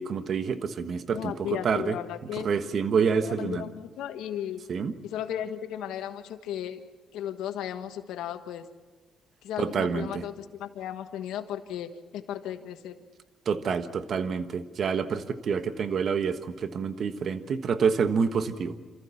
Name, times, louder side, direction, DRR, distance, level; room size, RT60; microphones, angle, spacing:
voice 1, 0.0-1.3 1.6-1.9 2.4-3.6 4.7-4.9 9.6-10.2 13.4-18.8, right 6 dB, 55° right, 10 dB, 1.4 m, -27 dB
voice 2, 1.1-2.5 3.2-4.7 5.0-6.8 7.1-8.7 9.4-13.0, left 10 dB, 90° left, 8 dB, 1.4 m, -35 dB
27.5 x 14.5 x 7.2 m, 1.4 s
cardioid pair, 90°, 0 cm